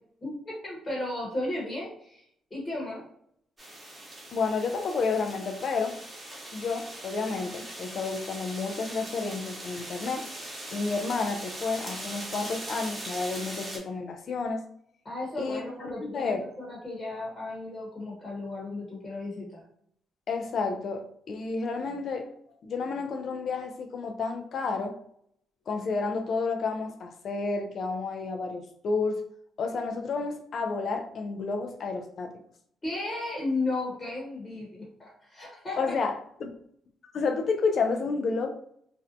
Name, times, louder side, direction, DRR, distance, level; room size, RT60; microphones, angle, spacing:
voice 1, 0.2-2.2 2.5-3.0 15.0-19.6 32.8-35.9, left 2 dB, 30° left, -4 dB, 0.9 m, -34 dB
sound 1, 3.6-13.8, right 1 dB, 20° right, 0.9 m, -40 dB
voice 2, 4.3-6.0 6.5-10.3 10.7-14.6 15.4-16.4 20.3-22.3 22.6-25.0 25.7-29.2 29.6-32.3 35.8-36.1 36.4-36.5 37.0-38.5, left 4 dB, 55° left, 5 dB, 0.3 m, -30 dB
2.5 x 2.1 x 2.5 m, 0.67 s
cardioid pair, 90°, 0 cm